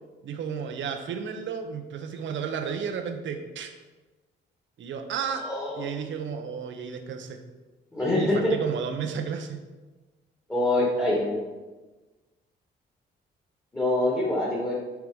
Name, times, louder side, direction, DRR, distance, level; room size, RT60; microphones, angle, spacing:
voice 1, 0.2-3.7 4.8-5.4 5.8-7.4 8.1-9.6, right 6 dB, 70° right, 6 dB, 1.1 m, -33 dB
voice 2, 5.4-5.8 7.9-8.5 10.5-11.3 13.7-14.7, left 1 dB, 15° left, -5 dB, 2.4 m, -25 dB
8.1 x 4.9 x 5.5 m, 1.2 s
cardioid pair, 90°, 20 cm